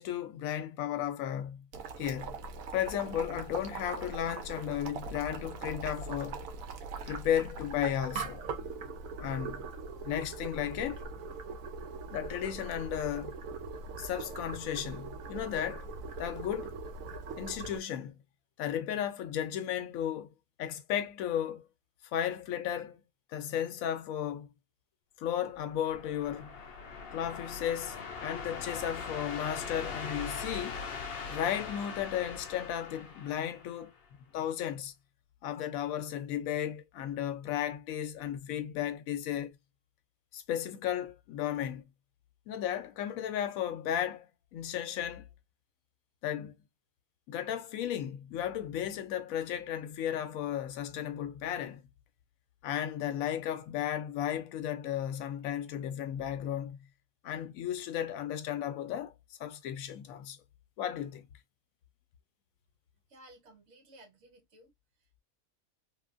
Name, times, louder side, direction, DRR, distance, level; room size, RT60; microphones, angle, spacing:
voice 1, 0.0-1.7 2.0-2.4 2.7-6.4 7.1-8.4 9.2-9.7 10.0-11.1 12.1-13.4 14.0-15.9 16.2-16.8 17.4-18.2 18.6-20.3 20.6-21.6 22.1-23.0 23.3-24.5 25.2-26.6 27.1-30.9 31.2-33.9 34.3-34.9 35.4-39.5 40.3-41.9 42.5-44.3 44.5-45.3 46.2-46.6 47.3-51.8 52.6-56.8 57.2-59.1 59.4-60.4 60.8-61.3, left 10 dB, 80° left, 1.0 m, -34 dB
Boiling, 1.7-17.8, right 4 dB, 80° right, 1.0 m, -41 dB
sound 1, 25.6-34.0, left 5 dB, 60° left, 0.6 m, -41 dB
voice 2, 63.1-64.7 65.0-65.2, right 1 dB, 60° right, 1.5 m, -57 dB
3.2 x 2.1 x 2.4 m
omnidirectional pair, 1.4 m